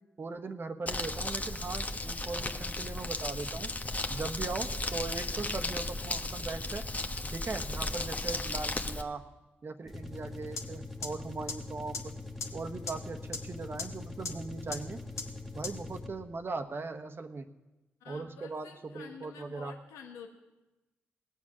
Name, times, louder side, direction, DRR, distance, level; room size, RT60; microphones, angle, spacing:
voice 1, 0.2-3.7 4.1-6.9 7.3-9.2 9.6-12.2 12.5-15.0 15.5-17.5 18.0-19.7, right 3 dB, 45° right, 7 dB, 1.2 m, -39 dB
Crumpling crinkling, 0.9-9.0, left 2 dB, 30° left, 1.3 m, -35 dB
sound 1, 9.8-16.4, left 3 dB, ahead, 1.6 m, -43 dB
sound 2, 10.6-10.7 11.0-11.1 11.5-11.6 11.9-12.0 12.4-12.5 12.9-13.0 13.3-13.4 13.8-13.9 14.2-14.3 14.7-14.8 15.2-15.3 15.6-15.7, left 4 dB, 70° left, 1.5 m, -34 dB
voice 2, 18.0-20.3, left 6 dB, 85° left, 3 dB, 1.4 m, -49 dB
19.0 x 7.5 x 6.2 m, 1.1 s
hypercardioid pair, 40°, 5 cm